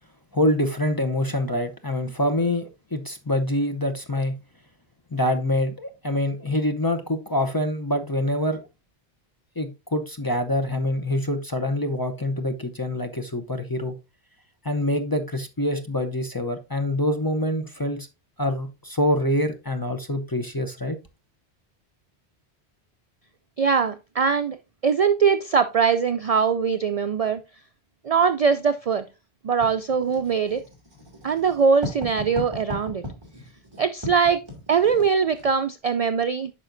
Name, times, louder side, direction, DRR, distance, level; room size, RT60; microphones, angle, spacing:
voice 1, 0.3-4.4 5.1-8.6 9.6-14.0 14.6-18.1 18.4-21.0, left 1 dB, 25° left, 0.5 m, -25 dB
voice 2, 23.6-24.6 24.8-27.4 28.0-29.1 29.4-30.6 31.2-33.0 33.8-36.5, right 6 dB, 60° right, 0.4 m, -22 dB
Writing, 29.6-35.5, left 1 dB, 25° right, 2.6 m, -37 dB
9.0 x 5.7 x 2.5 m
omnidirectional pair, 1.1 m